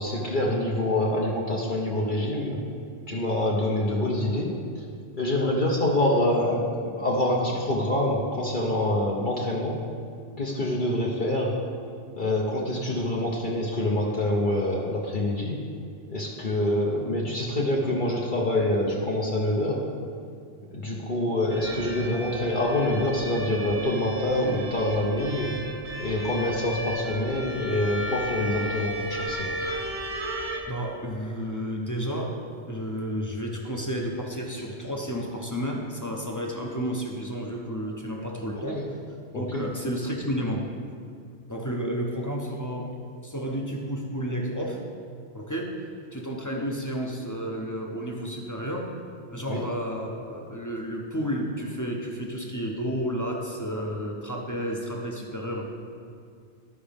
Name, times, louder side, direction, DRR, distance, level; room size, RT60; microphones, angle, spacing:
voice 1, 0.0-2.6 3.1-4.5 4.8-4.9 5.2-9.8 10.4-11.5 12.2-15.6 16.1-19.8 20.6-25.5 26.0-29.7 38.7-38.8 39.3-39.6 49.5-49.6, left 1 dB, 50° left, -3 dB, 1.0 m, -26 dB
sound 1, 21.5-30.6, equal, 65° right, 1.2 m, -34 dB
voice 2, 30.7-32.4 32.7-38.8 39.3-40.7 41.5-43.0 43.2-44.8 45.3-45.8 46.1-48.9 49.3-55.6, equal, 20° left, 0 dB, 0.7 m, -31 dB
13.0 x 5.0 x 3.5 m, 2.2 s
omnidirectional pair, 1.1 m